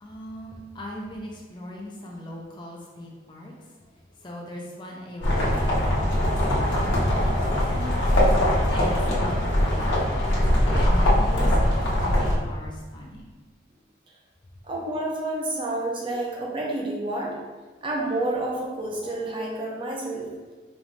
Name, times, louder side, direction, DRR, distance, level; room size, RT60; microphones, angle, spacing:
voice 1, 0.0-3.6 4.1-8.3 8.7-10.3 10.7-13.3, left 1 dB, 25° left, -2 dB, 0.5 m, -39 dB
sound 1, 5.2-12.4, left 1 dB, 85° left, 1.0 m, -22 dB
voice 2, 14.6-17.3 17.8-20.3, right 2 dB, 25° right, -2 dB, 0.6 m, -29 dB
4.6 x 3.1 x 2.7 m, 1.3 s
head